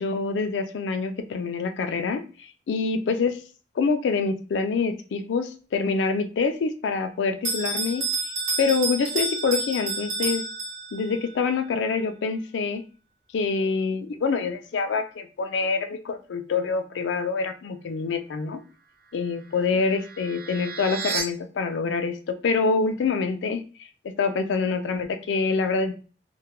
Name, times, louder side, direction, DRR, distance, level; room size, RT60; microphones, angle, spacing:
voice 1, 0.0-3.4 3.8-8.3 8.6-10.5 10.9-12.8 13.3-18.6 19.1-23.7 24.0-25.9, left 4 dB, 70° left, 8 dB, 0.3 m, -26 dB
Bell, 7.4-11.2, right 3 dB, 80° right, 0.8 m, -29 dB
sound 1, 19.0-21.2, right 5 dB, 55° right, 0.4 m, -34 dB
2.2 x 2.1 x 2.9 m, 0.38 s
head